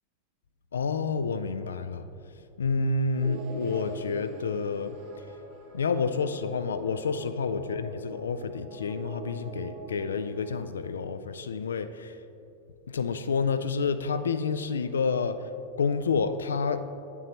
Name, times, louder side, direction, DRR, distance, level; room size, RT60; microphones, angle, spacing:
voice 1, 0.7-2.1 2.6-5.0 5.7-12.2 12.9-15.5 15.8-16.8, left 5 dB, 70° left, 11 dB, 0.3 m, -29 dB
sound 1, 3.1-10.7, right 3 dB, 50° right, 1.4 m, -43 dB
8.4 x 7.9 x 3.0 m, 2.7 s
figure-of-eight pair, 90°, 0 cm